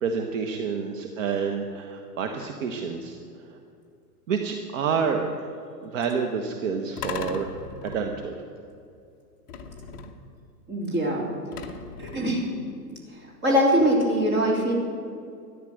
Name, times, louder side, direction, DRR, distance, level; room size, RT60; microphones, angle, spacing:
voice 1, 0.0-3.6 4.3-5.5 5.8-8.5, right 5 dB, 50° right, 4 dB, 1.3 m, -29 dB
sound 1, 7.0-8.3 9.5-10.3 11.5-12.4, left 5 dB, 15° left, 0.8 m, -37 dB
voice 2, 10.7-11.3 12.0-12.4 13.1-13.2 13.4-14.7, equal, 20° right, -2 dB, 3.1 m, -22 dB
14.0 x 10.5 x 7.8 m, 2.5 s
hypercardioid pair, 155°, 50 cm